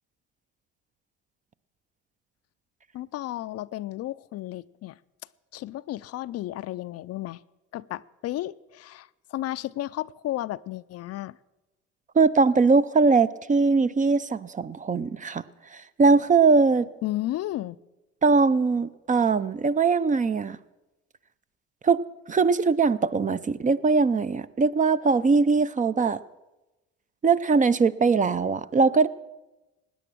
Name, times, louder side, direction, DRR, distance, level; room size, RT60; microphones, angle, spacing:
voice 1, 2.9-5.0 5.5-7.4 7.7-11.4 17.0-17.8, left 15 dB, 55° left, 16 dB, 0.4 m, -33 dB
voice 2, 12.2-15.4 15.7-16.9 18.2-20.6 21.8-22.0 22.3-26.2 27.2-29.1, right 4 dB, 25° right, 15 dB, 0.5 m, -21 dB
17.0 x 9.7 x 6.1 m, 1.1 s
supercardioid pair, 80°, 29 cm